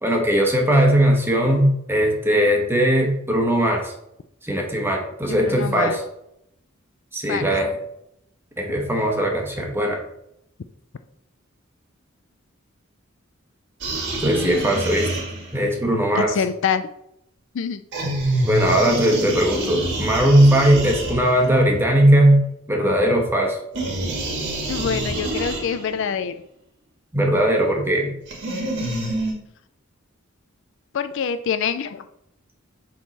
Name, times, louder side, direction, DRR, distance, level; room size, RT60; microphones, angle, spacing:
voice 1, 0.0-3.9 4.4-6.0 7.1-7.7 8.6-10.0 14.2-15.1 15.5-16.3 18.5-22.4 22.7-23.6 27.1-28.1, right 1 dB, 10° right, 1 dB, 1.3 m, -19 dB
voice 2, 5.3-6.0 7.3-7.5 16.1-16.9 17.5-17.8 24.7-26.4 30.9-32.0, left 7 dB, 65° left, 11 dB, 0.4 m, -25 dB
sound 1, 13.8-15.7 17.9-21.6 23.7-26.0 28.3-29.3, right 1 dB, 60° right, 1.9 m, -27 dB
7.4 x 3.7 x 4.1 m, 0.77 s
head